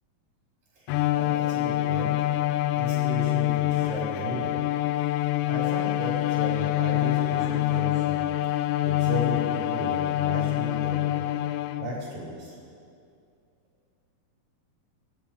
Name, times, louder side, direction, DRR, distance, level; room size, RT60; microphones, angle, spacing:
voice 1, 0.8-2.1 2.8-4.6 5.4-11.2 11.8-12.6, right 1 dB, 90° right, -5 dB, 5.7 m, -35 dB
Bowed string instrument, 0.9-12.1, left 15 dB, 80° left, 1.7 m, -26 dB
28.5 x 13.0 x 3.5 m, 2.4 s
omnidirectional pair, 3.8 m